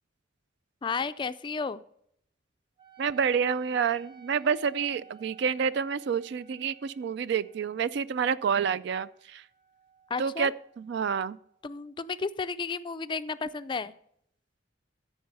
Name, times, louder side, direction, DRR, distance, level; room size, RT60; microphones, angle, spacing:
voice 1, 0.8-1.8 10.1-10.5 11.6-13.9, left 4 dB, 25° left, 13 dB, 0.3 m, -33 dB
Wind instrument woodwind instrument, 2.8-11.7, right 6 dB, 25° right, 0.8 m, -56 dB
voice 2, 3.0-9.5 10.2-11.4, right 6 dB, 65° right, 17 dB, 0.4 m, -28 dB
14.0 x 4.7 x 5.5 m, 0.70 s
head